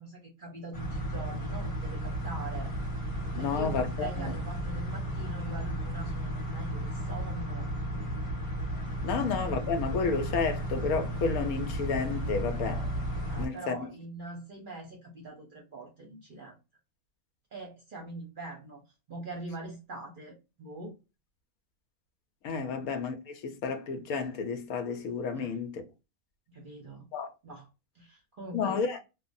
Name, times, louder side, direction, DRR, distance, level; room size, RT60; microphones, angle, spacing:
voice 1, 0.0-2.7 3.4-7.7 13.3-16.6 17.5-18.8 19.1-20.9 22.7-22.8 25.3-25.5 26.5-27.1 27.4-27.7 27.9-28.8, right 2 dB, 45° right, 0.7 m, -43 dB
sound 1, 0.7-13.5, right 1 dB, 25° left, 0.9 m, -34 dB
voice 2, 3.3-4.3 9.0-12.9 13.4-13.9 22.4-25.8 27.1-27.3 28.5-29.0, left 5 dB, 75° left, 1.1 m, -31 dB
3.2 x 2.1 x 2.5 m
omnidirectional pair, 1.5 m